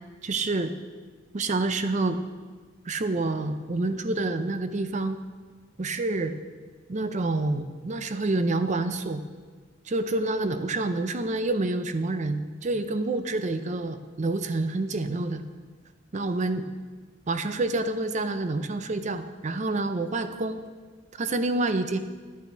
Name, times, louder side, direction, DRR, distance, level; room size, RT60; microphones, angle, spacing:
voice 1, 0.2-0.7 1.3-2.2 2.9-5.2 5.8-6.4 6.9-9.2 9.9-15.4 16.1-16.6 17.3-20.6 21.2-22.0, right 2 dB, 40° right, 9 dB, 0.6 m, -28 dB
10.5 x 8.4 x 4.6 m, 1.4 s
head